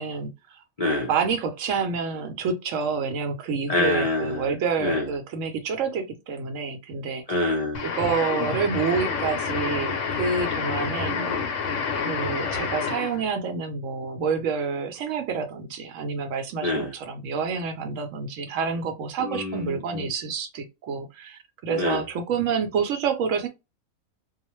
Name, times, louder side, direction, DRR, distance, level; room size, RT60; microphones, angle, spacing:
voice 1, 0.0-0.6 1.1-7.4 7.8-11.2 12.1-23.5, right 5 dB, 75° right, 0.9 m, -28 dB
voice 2, 0.8-1.1 3.7-4.5 4.8-5.1 7.3-7.9 11.1-11.5 16.6-16.9 19.2-20.1 21.7-22.0, left 2 dB, 45° left, 0.5 m, -26 dB
sound 1, 7.7-13.3, left 5 dB, 70° left, 0.8 m, -28 dB
2.3 x 2.1 x 2.9 m
omnidirectional pair, 1.4 m